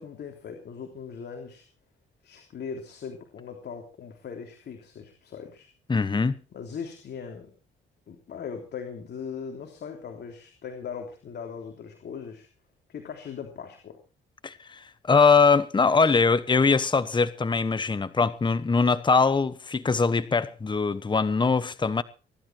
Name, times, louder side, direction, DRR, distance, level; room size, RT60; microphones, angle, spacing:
voice 1, 0.0-1.6 2.2-5.7 6.5-7.5 8.1-12.5 12.9-14.0, left 6 dB, 60° left, 3.3 m, -39 dB
voice 2, 5.9-6.4 14.4-22.0, left 4 dB, 25° left, 1.1 m, -22 dB
20.0 x 12.0 x 4.6 m
cardioid pair, 90°, 20 cm